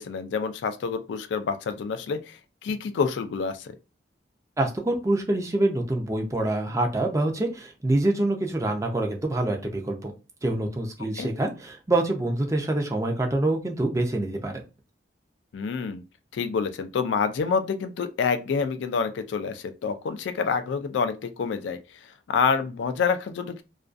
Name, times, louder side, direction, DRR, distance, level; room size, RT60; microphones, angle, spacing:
voice 1, 0.0-3.7 11.2-11.3 15.5-16.0 16.3-21.8 22.3-23.6, left 5 dB, 70° left, 0.3 m, -27 dB
voice 2, 4.6-10.1 10.4-14.6, right 2 dB, 15° right, 0.4 m, -26 dB
2.4 x 2.3 x 2.4 m
head